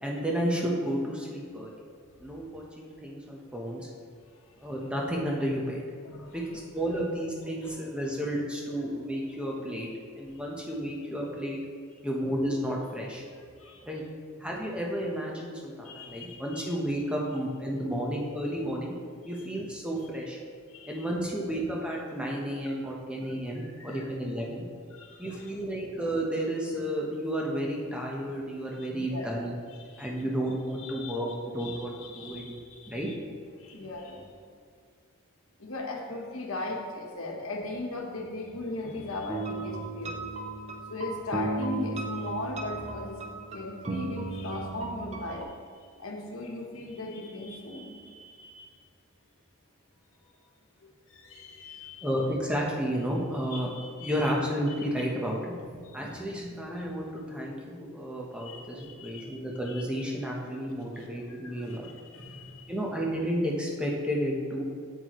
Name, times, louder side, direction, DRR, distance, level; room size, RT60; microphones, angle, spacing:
voice 1, 0.0-1.7 2.2-3.9 4.6-5.8 6.3-9.9 10.2-11.6 12.0-13.2 13.8-14.0 14.4-18.9 19.2-20.4 20.9-24.6 25.2-29.5 30.0-32.5 32.9-33.1 52.0-53.7 54.0-61.9 62.7-64.6, equal, 5° right, -2 dB, 1.0 m, -32 dB
voice 2, 6.0-6.6 7.6-7.7 13.6-13.9 15.8-16.7 19.2-19.5 20.7-21.1 22.6-22.8 23.5-24.1 24.9-25.5 28.8-29.5 29.8-30.3 30.8-31.2 31.6-33.1 33.6-34.3 35.6-40.3 40.9-43.2 43.5-45.5 46.0-48.7 50.2-50.4 51.1-52.1 53.4-54.3 55.8-56.0 58.4-59.3 59.6-60.0 60.9-62.7, left 2 dB, 75° left, 0 dB, 1.2 m, -39 dB
sound 1, 39.3-45.4, right 3 dB, 30° right, 0.6 m, -35 dB
8.4 x 8.3 x 3.1 m, 2.1 s
head